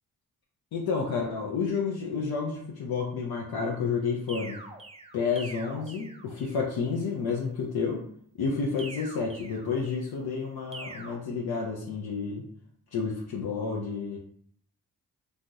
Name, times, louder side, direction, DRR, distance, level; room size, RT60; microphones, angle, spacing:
voice 1, 0.7-4.6 5.1-8.0 8.4-12.4 12.9-14.2, left 5 dB, 80° left, -2 dB, 0.6 m, -30 dB
sound 1, 4.3-6.7 8.8-10.2 10.7-11.2, right 3 dB, 15° right, 0.4 m, -44 dB
2.6 x 2.0 x 3.4 m, 0.63 s
supercardioid pair, 50°, 37 cm